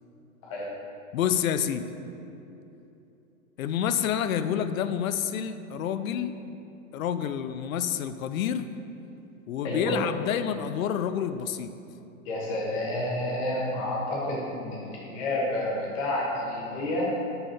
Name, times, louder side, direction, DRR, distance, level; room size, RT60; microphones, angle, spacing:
voice 1, 1.1-1.9 3.6-6.3 6.9-8.7 9.5-11.7, left 9 dB, 75° left, 11 dB, 0.5 m, -28 dB
voice 2, 9.6-10.0 12.2-17.1, left 1 dB, 25° left, -4 dB, 1.1 m, -30 dB
5.6 x 5.5 x 4.4 m, 2.9 s
hypercardioid pair, 170°, 41 cm